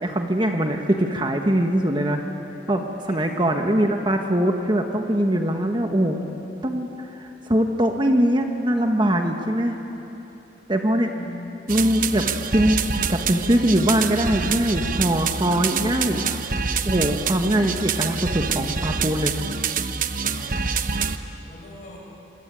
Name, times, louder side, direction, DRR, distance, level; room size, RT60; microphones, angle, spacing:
voice 1, 0.0-2.2 2.7-6.2 6.6-9.8 10.7-11.1 11.7-12.3 12.5-12.8 13.1-16.2 16.8-19.3, right 1 dB, 25° right, 4 dB, 1.4 m, -22 dB
voice 2, 3.1-3.5 10.9-11.5 19.9-20.8 21.4-22.0, left 1 dB, 45° left, -2 dB, 7.7 m, -42 dB
sound 1, 11.7-21.2, right 5 dB, 50° right, 1.0 m, -26 dB
26.5 x 23.5 x 9.2 m, 3.0 s
head